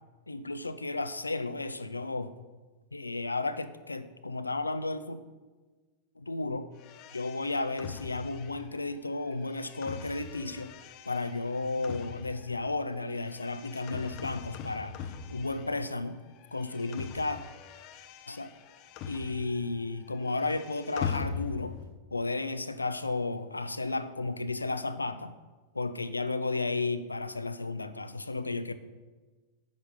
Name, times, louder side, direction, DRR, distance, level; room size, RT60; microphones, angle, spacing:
voice 1, 0.3-2.3 2.9-5.2 6.2-6.7 7.1-10.7 11.1-15.0 15.3-16.2 16.5-17.4 18.3-18.5 19.1-21.8 22.1-25.3 25.7-28.7, left 3 dB, 80° left, 13 dB, 0.6 m, -33 dB
sound 1, 6.8-16.1 16.3-19.8 20.0-21.9, left 7 dB, 40° left, 0.7 m, -42 dB
10.5 x 8.0 x 5.3 m, 1.3 s
figure-of-eight pair, 90°, 0 cm